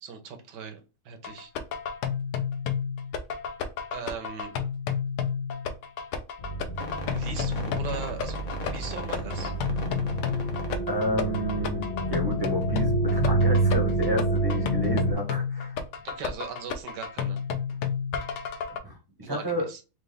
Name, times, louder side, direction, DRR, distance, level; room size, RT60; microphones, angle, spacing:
voice 1, 0.0-0.8 1.0-1.5 3.9-4.5 7.1-8.4 8.7-9.5 16.0-17.4 19.2-19.8, right 6 dB, 65° right, 6 dB, 1.5 m, -39 dB
sound 1, 1.2-18.8, left 7 dB, 70° left, 1.2 m, -31 dB
sound 2, 6.4-15.1, right 2 dB, 40° left, 0.5 m, -28 dB
voice 2, 10.9-15.8 18.8-19.7, right 1 dB, 20° right, 2 dB, 0.7 m, -30 dB
4.7 x 2.4 x 3.4 m, 0.31 s
omnidirectional pair, 2.1 m